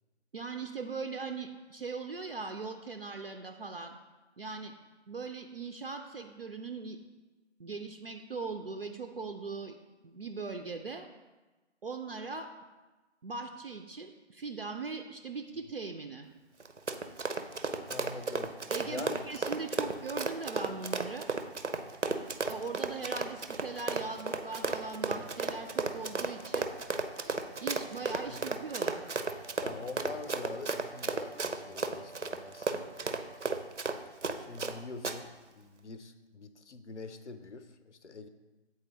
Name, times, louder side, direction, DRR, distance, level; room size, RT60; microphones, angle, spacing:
voice 1, 0.3-4.0 4.4-4.7 5.1-7.0 7.6-9.8 10.0-11.1 11.8-12.7 13.2-16.3 18.7-21.3 22.5-26.7 27.2-27.3 27.6-29.1, right 4 dB, 55° right, 5 dB, 0.4 m, -40 dB
Run, 16.6-34.7 35.0-35.2, right 4 dB, 90° right, 0.7 m, -33 dB
voice 2, 17.9-18.6 18.8-19.2 28.2-28.4 29.6-33.2 34.5-38.3, left 4 dB, 75° left, 10 dB, 0.7 m, -44 dB
sound 1, 23.6-33.4, right 2 dB, 15° left, 0.7 m, -55 dB
8.3 x 4.1 x 3.9 m, 1.2 s
figure-of-eight pair, 150°, 35 cm